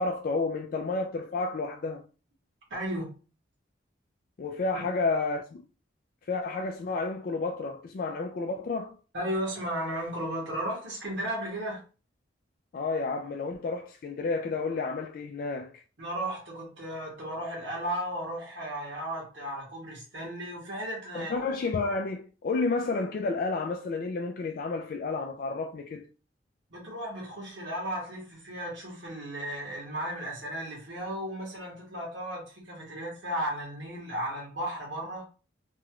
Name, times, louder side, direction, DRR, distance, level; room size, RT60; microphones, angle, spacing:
voice 1, 0.0-2.0 4.4-5.6 6.3-9.0 12.7-15.7 21.1-26.1, left 3 dB, 50° left, 0.3 m, -31 dB
voice 2, 2.7-3.2 9.1-11.8 16.0-21.4 26.7-35.3, right 1 dB, 70° right, 1.4 m, -35 dB
3.0 x 2.4 x 2.9 m
head